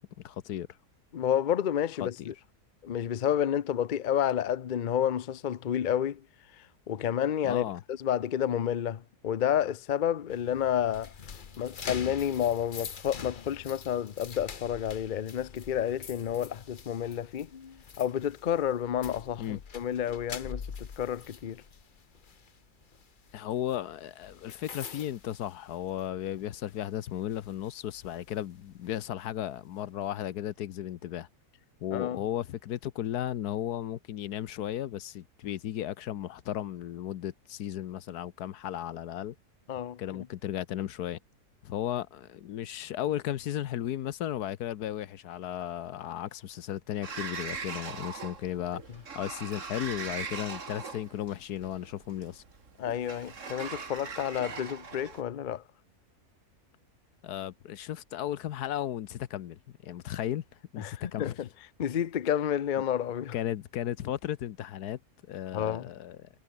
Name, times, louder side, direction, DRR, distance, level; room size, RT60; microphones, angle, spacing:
voice 1, 0.2-0.7 2.0-2.3 7.4-7.8 19.4-19.6 23.3-31.3 31.8-39.3 40.0-41.2 41.6-52.4 57.2-60.4 60.7-61.3 63.3-65.0 65.3-66.3, left 11 dB, 75° left, 1.3 m, -35 dB
voice 2, 1.1-2.3 2.8-6.2 6.9-11.1 11.6-17.5 18.0-21.6 31.9-32.2 39.7-40.0 52.8-55.6 60.8-61.3 61.8-63.3 65.5-65.9, left 9 dB, 55° left, 0.5 m, -30 dB
sound 1, 10.3-26.2 26.5-26.8 27.3-29.0, left 6 dB, 35° left, 1.0 m, -45 dB
Sliding door, 47.0-55.2, right 5 dB, 50° right, 2.2 m, -40 dB
omnidirectional pair, 1.7 m